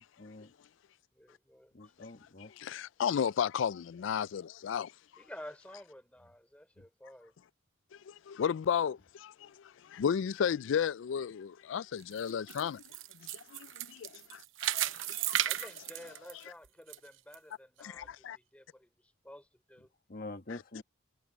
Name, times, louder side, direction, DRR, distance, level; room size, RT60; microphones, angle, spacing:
voice 1, 1.1-1.9 5.2-7.3 15.4-19.9, left 1 dB, 5° left, 4.8 m, -52 dB
voice 2, 1.7-2.5 20.1-20.8, left 2 dB, 50° left, 1.4 m, -45 dB
voice 3, 2.6-4.9 8.1-9.5 9.8-12.8 13.3-14.4 14.7-15.5 17.8-18.4 20.5-20.8, left 7 dB, 75° left, 0.3 m, -34 dB
sound 1, 12.0-17.0 17.3-17.4 18.0-18.1, right 12 dB, 85° right, 0.7 m, -35 dB
head